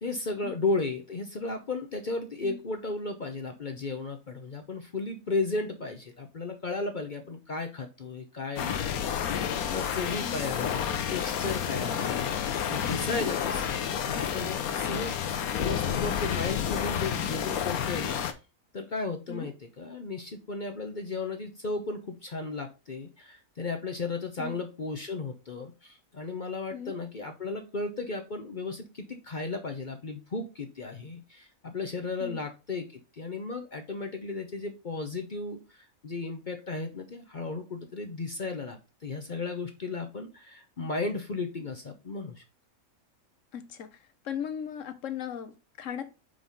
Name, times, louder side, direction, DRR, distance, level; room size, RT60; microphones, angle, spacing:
voice 1, 0.0-18.2 18.7-42.4, left 3 dB, 40° left, 0.8 m, -35 dB
sound 1, 8.6-18.3, left 8 dB, 90° left, 1.2 m, -30 dB
voice 2, 43.5-44.0 44.2-46.1, left 9 dB, 65° left, 1.1 m, -38 dB
5.4 x 4.9 x 4.0 m
omnidirectional pair, 1.5 m